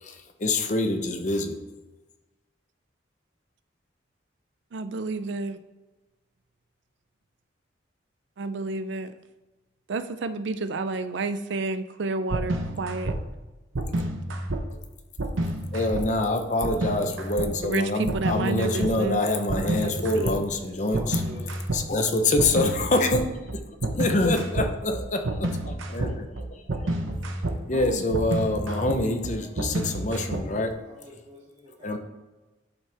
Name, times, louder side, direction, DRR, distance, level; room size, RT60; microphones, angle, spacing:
voice 1, 0.0-1.6 15.7-21.2 21.7-23.6 23.9-26.3 26.7-26.8 27.7-30.7 31.8-32.0, left 2 dB, 40° left, 5 dB, 0.7 m, -26 dB
voice 2, 4.7-5.6 8.4-9.1 9.9-13.1 17.6-19.2 19.6-20.4 27.7-28.0, right 3 dB, 70° right, 12 dB, 0.5 m, -31 dB
sound 1, 12.3-13.2 13.7-14.6 15.2-16.0 16.6-17.5 18.1-18.9 19.5-20.4 20.9-21.8 22.4-30.7, right 1 dB, 90° right, 0.8 m, -29 dB
voice 3, 20.6-21.6 28.7-32.0, equal, 35° right, -8 dB, 2.1 m, -46 dB
11.0 x 5.6 x 3.4 m, 1.1 s
head